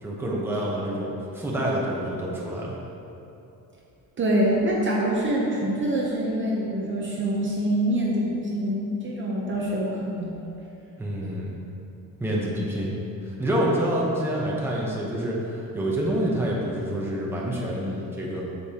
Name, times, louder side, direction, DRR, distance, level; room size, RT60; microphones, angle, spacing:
voice 1, 0.0-2.8 11.0-11.5 12.2-18.4, right 1 dB, 5° right, -5 dB, 0.9 m, -27 dB
voice 2, 4.2-10.5 11.2-11.3, right 1 dB, 35° right, -4 dB, 0.8 m, -25 dB
8.3 x 6.9 x 2.9 m, 2.8 s
cardioid pair, 170°, 36 cm